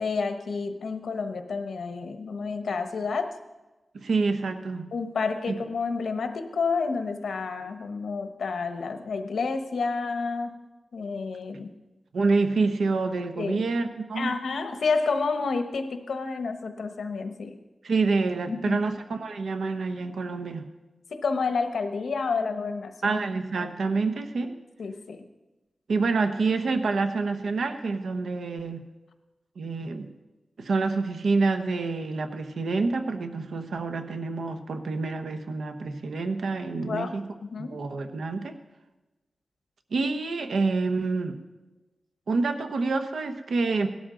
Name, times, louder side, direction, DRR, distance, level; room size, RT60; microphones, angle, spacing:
voice 1, 0.0-3.3 4.9-10.6 10.9-11.7 13.4-13.6 14.1-17.5 18.5-18.8 21.1-23.2 24.8-25.2 36.8-37.1 37.4-37.8, left 4 dB, 85° left, 7 dB, 1.0 m, -29 dB
voice 2, 3.9-4.9 5.5-5.6 12.1-14.4 17.8-20.6 23.0-24.6 25.9-28.8 29.6-30.1 30.6-37.3 37.6-38.6 39.9-41.4 42.3-43.9, right 3 dB, 85° right, 7 dB, 1.0 m, -27 dB
17.5 x 12.5 x 3.9 m, 1.1 s
wide cardioid pair, 170°, 0 cm